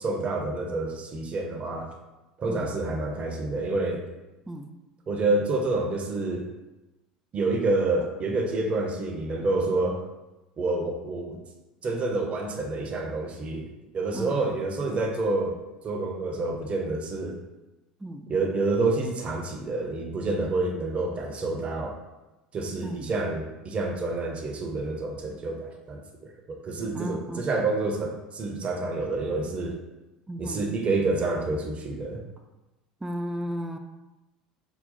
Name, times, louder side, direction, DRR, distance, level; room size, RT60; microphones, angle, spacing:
voice 1, 0.0-1.9 2.4-4.0 5.1-6.4 7.3-10.0 10.6-11.4 11.8-13.7 13.9-15.6 15.8-17.4 18.3-22.0 22.5-29.8 30.4-32.2, right 2 dB, 30° right, 2 dB, 0.7 m, -28 dB
voice 2, 14.1-14.5 18.0-18.3 22.8-23.1 26.9-27.4 30.3-30.7 33.0-33.8, equal, 10° right, 5 dB, 0.3 m, -34 dB
3.9 x 2.3 x 4.0 m, 1.1 s
figure-of-eight pair, 70°, 4 cm